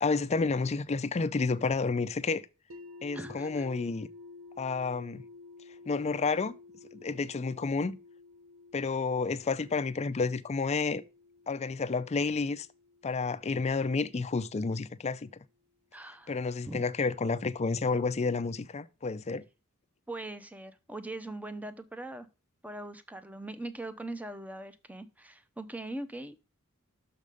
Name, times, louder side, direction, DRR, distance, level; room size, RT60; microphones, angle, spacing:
voice 1, 0.0-2.5 3.0-4.1 4.6-5.2 5.9-6.5 6.9-8.0 8.7-11.0 11.5-12.7 13.0-15.3 16.3-19.4, left 4 dB, 30° left, 0.4 m, -30 dB
sound 1, 2.7-14.6, left 3 dB, 70° right, 1.1 m, -52 dB
voice 2, 3.1-3.7 15.9-16.3 16.7-16.8 20.1-22.3 22.6-26.4, right 2 dB, 5° right, 0.6 m, -41 dB
6.5 x 4.9 x 5.3 m
head